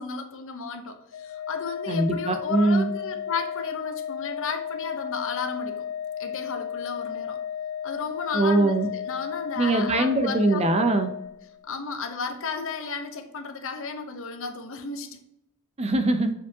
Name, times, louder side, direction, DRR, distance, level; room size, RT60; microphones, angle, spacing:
voice 1, 0.0-5.9 6.2-7.4 7.8-10.6 11.6-15.2, left 4 dB, 60° left, 7 dB, 0.9 m, -34 dB
Organ, 1.1-11.8, left 8 dB, 85° left, 0.5 m, -34 dB
voice 2, 1.9-2.9 8.3-8.9 9.6-11.1 15.8-16.3, right 2 dB, 30° right, 8 dB, 0.6 m, -22 dB
7.2 x 4.9 x 2.8 m, 0.82 s
head